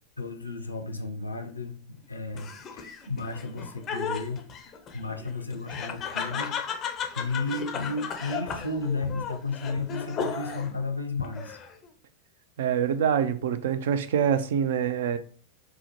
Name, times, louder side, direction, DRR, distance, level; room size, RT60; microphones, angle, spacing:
voice 1, 0.2-4.5 4.9-11.6, left 3 dB, 80° left, 0.5 m, -33 dB
Laughter, 2.3-10.8 11.2-11.9, left 6 dB, 30° left, 0.4 m, -35 dB
voice 2, 12.6-15.2, right 8 dB, 55° right, 0.3 m, -25 dB
4.5 x 2.0 x 2.8 m
figure-of-eight pair, 90°, 0 cm